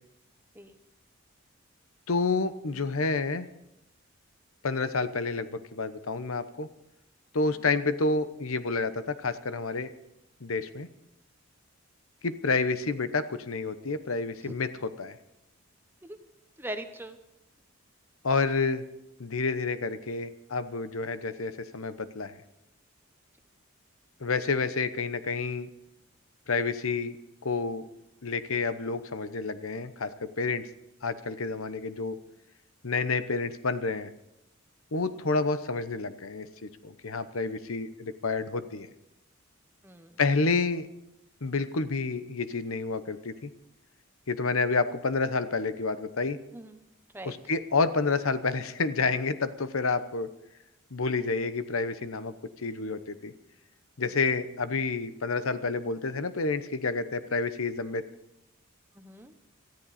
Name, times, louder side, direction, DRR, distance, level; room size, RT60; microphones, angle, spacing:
voice 1, 2.1-3.5 4.6-6.7 7.3-9.9 10.4-10.9 12.2-14.7 15.0-15.2 18.2-18.8 19.2-22.3 24.2-25.7 26.5-27.1 27.4-27.9 28.2-30.6 31.0-32.2 32.8-34.1 34.9-38.9 40.2-40.9 41.4-43.5 44.3-46.4 47.2-50.3 50.9-52.3 52.6-53.3 54.0-58.0, left 4 dB, 80° left, 12 dB, 0.9 m, -29 dB
voice 2, 16.6-17.2 39.8-40.2 46.5-46.8 47.1-47.4 54.0-54.1 58.9-59.3, right 1 dB, 10° right, 7 dB, 1.0 m, -41 dB
19.0 x 13.5 x 4.2 m, 0.87 s
head